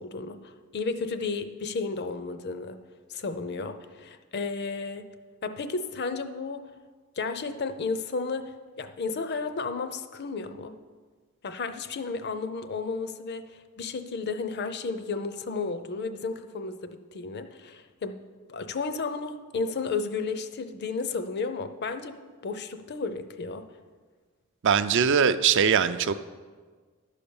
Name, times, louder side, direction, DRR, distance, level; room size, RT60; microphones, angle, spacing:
voice 1, 0.0-2.8 3.1-5.1 5.4-6.6 7.2-8.5 8.8-10.8 11.4-18.2 18.5-22.2 22.4-23.7, left 4 dB, 50° left, 10 dB, 0.6 m, -33 dB
voice 2, 24.6-26.1, right 7 dB, 60° right, 12 dB, 0.5 m, -21 dB
12.0 x 5.0 x 7.0 m, 1.5 s
head